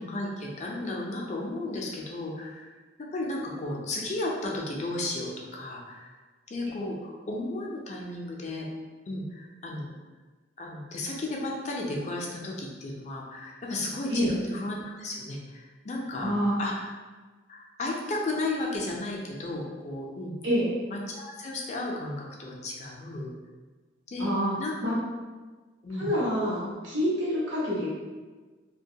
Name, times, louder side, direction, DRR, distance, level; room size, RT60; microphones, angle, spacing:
voice 1, 0.0-2.7 3.0-6.1 6.5-8.7 9.1-9.9 10.6-16.3 16.6-16.9 17.5-20.3 20.9-23.3 24.1-24.3 24.6-24.8 25.8-26.1 26.6-26.7, left 2 dB, 35° left, -2 dB, 0.4 m, -34 dB
voice 2, 16.2-16.5 20.4-20.7 24.2-24.5 24.8-24.9 26.0-27.9, equal, 80° right, -7 dB, 0.8 m, -27 dB
2.6 x 2.2 x 2.7 m, 1.3 s
head